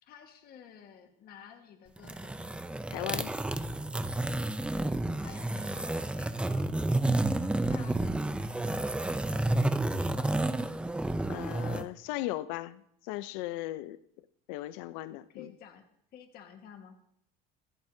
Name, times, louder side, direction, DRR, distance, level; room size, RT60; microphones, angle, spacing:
voice 1, 0.0-2.4 5.2-6.9 7.7-10.5 15.1-15.8 16.1-17.0, left 8 dB, 50° left, 4 dB, 1.5 m, -52 dB
sound 1, 2.0-11.8, right 2 dB, 5° right, 0.5 m, -30 dB
voice 2, 2.9-3.3 11.3-14.0 14.5-15.5, left 16 dB, 80° left, 15 dB, 0.6 m, -37 dB
25.5 x 8.7 x 2.7 m, 0.70 s
cardioid pair, 125°, 20 cm